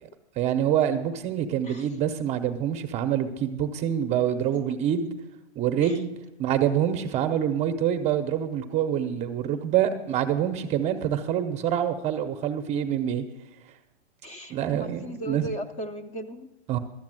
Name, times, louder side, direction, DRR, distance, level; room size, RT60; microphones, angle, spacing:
voice 1, 0.4-5.1 5.5-6.1 6.4-13.2 14.5-15.5 16.7-16.8, right 9 dB, 20° right, 7 dB, 0.7 m, -26 dB
voice 2, 14.2-16.5, right 1 dB, 25° left, 6 dB, 0.7 m, -37 dB
13.0 x 7.2 x 7.7 m, 0.97 s
hypercardioid pair, 130°, 35 cm